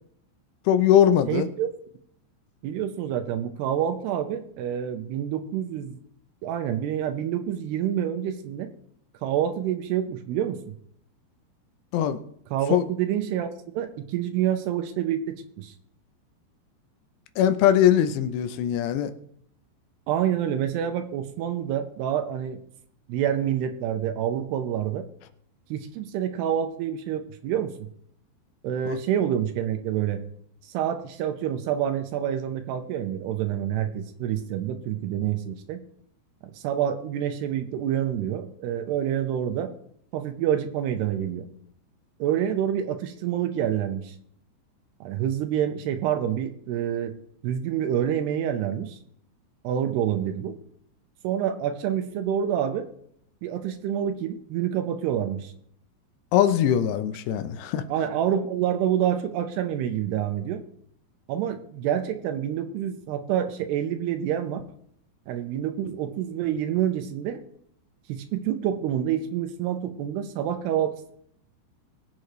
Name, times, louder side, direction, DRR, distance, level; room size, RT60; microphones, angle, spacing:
voice 1, 0.7-1.5 11.9-12.2 12.7-12.8 17.4-19.1 28.9-29.0 56.3-57.8, left 10 dB, 80° left, 10 dB, 2.8 m, -21 dB
voice 2, 1.3-1.7 2.6-6.0 6.4-8.7 9.2-10.6 12.5-13.5 13.7-15.7 20.1-22.6 23.1-25.1 25.7-27.9 28.6-30.2 30.6-35.8 36.5-39.7 40.1-41.5 42.2-44.2 45.0-47.1 47.4-49.0 49.6-50.6 51.2-52.9 53.4-55.5 57.9-60.6 61.3-64.6 65.3-67.4 68.1-71.1, right 10 dB, 80° right, 8 dB, 2.7 m, -27 dB
21.0 x 8.3 x 3.2 m, 0.67 s
omnidirectional pair, 5.1 m